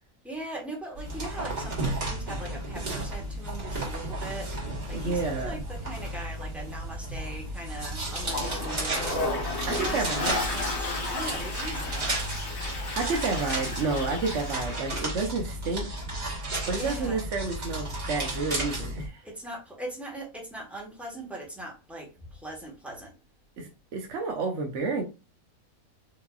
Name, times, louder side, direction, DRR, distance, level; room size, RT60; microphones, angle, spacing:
voice 1, 0.2-9.3 9.8-12.1 16.7-17.2 19.2-23.1, right 1 dB, ahead, 0.9 m, -40 dB
sound 1, 1.0-19.1, right 1 dB, 30° right, 1.5 m, -33 dB
voice 2, 4.9-5.6 9.7-10.3 13.0-15.9 16.7-19.2 23.6-25.0, right 4 dB, 60° right, 0.8 m, -30 dB
Toilet flush, 8.1-14.9, left 2 dB, 50° left, 1.3 m, -33 dB
4.8 x 2.7 x 2.3 m
omnidirectional pair, 1.7 m